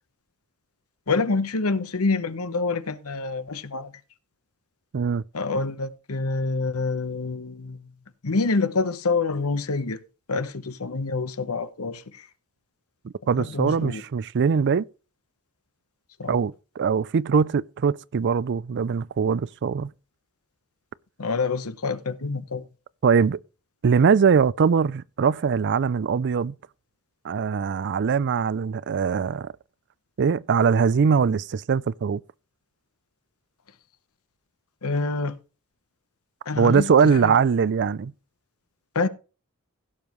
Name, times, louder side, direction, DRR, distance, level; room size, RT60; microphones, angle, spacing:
voice 1, 1.1-3.9 5.3-7.9 8.2-10.0 10.3-12.3 13.4-14.0 16.2-16.4 21.2-22.6 34.8-35.4 36.5-37.3 38.9-39.1, left 3 dB, 70° left, 1.0 m, -27 dB
voice 2, 13.0-14.8 16.3-19.9 23.0-23.4 23.8-26.5 27.2-29.5 30.2-32.2 36.6-38.1, right 6 dB, 50° right, 0.4 m, -22 dB
16.5 x 7.3 x 3.1 m
head